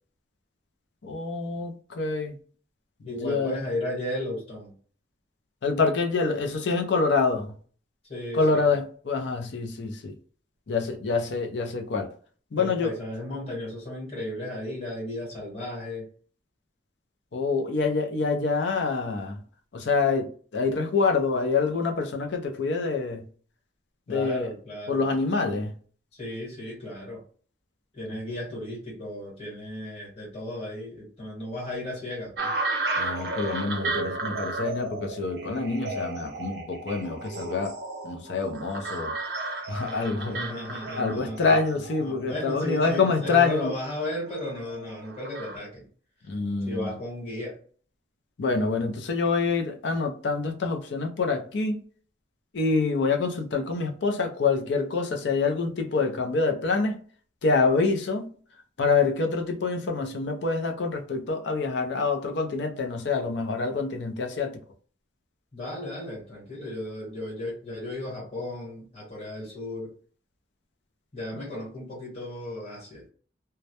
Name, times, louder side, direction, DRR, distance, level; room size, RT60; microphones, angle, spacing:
voice 1, 1.0-2.3 3.2-3.6 5.6-7.5 8.3-10.1 10.7-12.1 12.5-12.9 17.3-19.4 19.7-23.2 24.1-24.5 24.9-25.7 33.0-37.8 38.0-39.1 39.7-40.4 41.0-43.7 46.3-46.9 48.4-51.8 52.5-57.0 57.4-58.3 58.8-64.6, left 4 dB, 75° left, 0.5 m, -26 dB
voice 2, 3.0-4.8 8.1-8.7 12.6-16.1 24.1-25.0 26.1-27.2 27.9-32.5 40.3-41.7 42.0-45.9 46.6-47.6 65.5-69.9 71.1-73.0, left 1 dB, 35° left, 1.2 m, -35 dB
sound 1, 32.4-45.6, right 2 dB, 60° right, 0.5 m, -34 dB
2.2 x 2.0 x 2.8 m
head